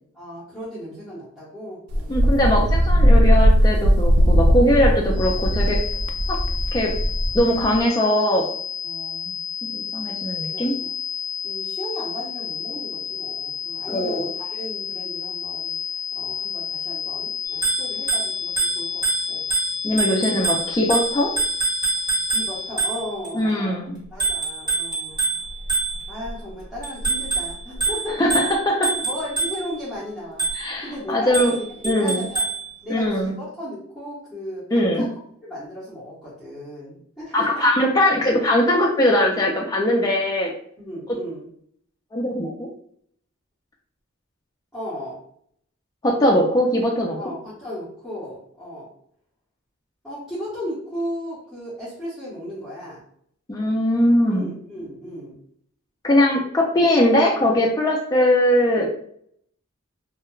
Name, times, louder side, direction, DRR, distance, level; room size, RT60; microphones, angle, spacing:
voice 1, 0.1-2.5 4.7-5.0 8.8-9.2 10.5-10.9 11.4-15.7 16.1-19.4 22.3-23.8 24.1-25.2 26.1-28.3 29.0-30.4 30.8-32.5 32.8-35.1 35.4-37.7 40.8-41.5 44.7-45.2 47.2-48.9 50.0-53.0 54.3-55.4, equal, ahead, -12 dB, 0.9 m, -35 dB
Wind, 1.9-7.8, equal, 90° right, 0.4 m, -18 dB
voice 2, 2.1-5.8 6.3-6.4 6.7-6.9 7.3-8.5 9.6-10.7 13.9-14.2 19.8-21.3 23.3-24.0 28.2-28.9 30.5-31.5 31.8-32.2 32.9-33.3 34.7-35.0 37.3-40.5 42.1-42.7 46.0-47.2 53.5-54.5 56.0-59.0, left 1 dB, 15° left, -2 dB, 0.3 m, -20 dB
sound 1, 5.1-22.9, left 7 dB, 35° left, 0.7 m, -31 dB
Bicycle bell, 17.5-23.3 24.2-26.3 26.8-29.8 30.4-30.8 31.3-32.7, right 4 dB, 25° right, 1.1 m, -26 dB
2.2 x 2.1 x 3.0 m, 0.65 s
head